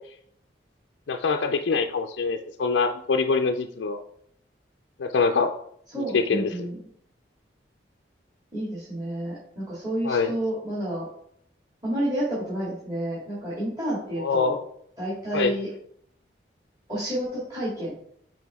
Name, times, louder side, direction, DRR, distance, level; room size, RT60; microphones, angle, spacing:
voice 1, 1.1-4.0 5.0-5.5 6.1-6.7 10.0-10.3 14.2-14.6 15.3-15.5, left 4 dB, 80° left, 5 dB, 0.4 m, -24 dB
voice 2, 5.9-6.8 8.5-11.1 11.8-14.5 15.0-15.7 16.9-17.9, right 1 dB, 20° right, -9 dB, 2.1 m, -30 dB
6.0 x 4.7 x 3.5 m, 0.68 s
head